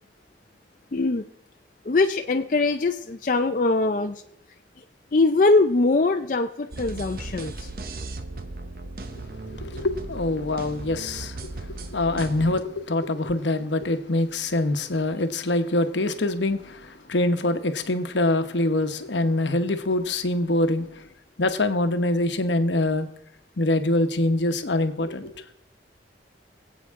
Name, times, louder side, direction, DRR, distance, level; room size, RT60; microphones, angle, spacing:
voice 1, 0.9-1.2 1.9-4.2 5.1-7.7, left 3 dB, 45° left, 0.5 m, -22 dB
sound 1, 6.7-12.6, right 2 dB, 50° right, 0.8 m, -37 dB
voice 2, 9.4-21.1 21.4-23.1 23.6-25.5, left 2 dB, 80° left, 1.0 m, -25 dB
24.5 x 8.3 x 3.6 m
head